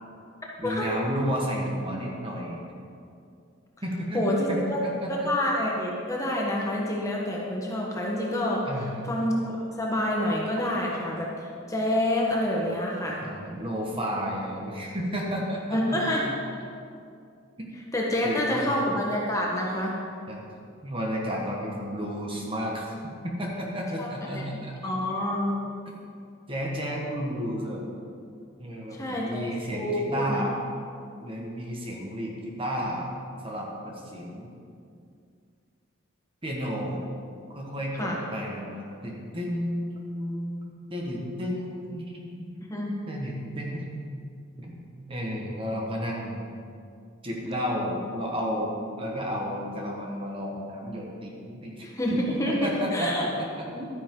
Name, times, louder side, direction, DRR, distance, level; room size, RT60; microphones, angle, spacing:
voice 1, 0.6-2.6 3.8-5.1 8.7-9.0 13.2-16.2 17.6-17.7 18.2-18.8 20.3-20.4 20.8-24.9 26.5-27.9 28.6-30.5 31.2-33.1 33.4-34.5 36.4-37.0 37.5-40.6 40.9-42.2 43.1-44.0 44.6-46.4 47.2-52.2 52.4-53.9, equal, 25° right, -2 dB, 1.5 m, -32 dB
voice 2, 4.1-4.8 5.1-8.7 9.0-13.2 15.7-16.3 17.9-19.9 24.0-24.1 24.3-24.4 24.8-25.6 28.9-30.4 38.0-38.2 42.7-42.9 51.8-53.3, left 1 dB, 15° left, -3 dB, 1.3 m, -27 dB
12.5 x 9.7 x 3.8 m, 2.4 s
head